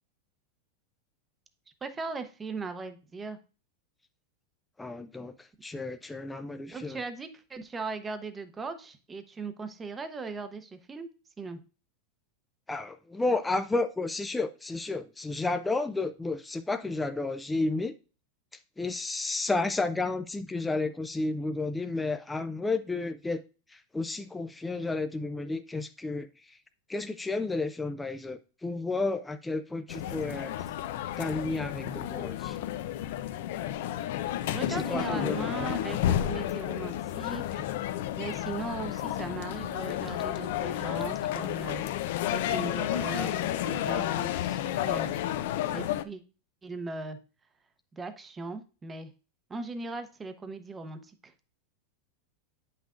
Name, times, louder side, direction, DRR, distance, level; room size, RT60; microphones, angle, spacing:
voice 1, 1.8-3.4 6.7-11.1 11.4-11.6 34.5-37.6 38.2-41.8 42.3-45.1 45.7-46.2 46.6-47.2 47.9-49.1 49.5-51.3, right 3 dB, 15° right, 0.8 m, -38 dB
voice 2, 4.8-7.0 12.7-17.9 18.8-23.4 23.7-26.6 26.9-30.5 31.2-32.6 34.7-35.7, left 3 dB, 10° left, 0.4 m, -32 dB
sound 1, 29.9-46.0, left 12 dB, 65° left, 0.5 m, -31 dB
8.6 x 5.7 x 2.5 m
supercardioid pair, 145°, 0 cm